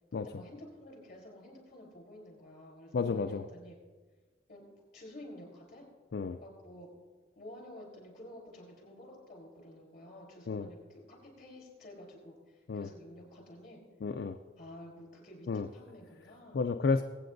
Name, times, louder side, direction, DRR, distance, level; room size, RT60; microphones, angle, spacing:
voice 1, 0.2-3.8 4.5-4.7 4.9-5.9 6.4-6.9 7.4-13.8 14.6-16.6, left 1 dB, 45° left, 0 dB, 3.8 m, -51 dB
voice 2, 2.9-3.5 6.1-6.4 10.5-10.7 12.7-12.9 14.0-14.4 15.5-15.7 16.5-17.0, left 4 dB, 65° left, 7 dB, 0.4 m, -31 dB
23.0 x 8.5 x 2.6 m, 1.5 s
head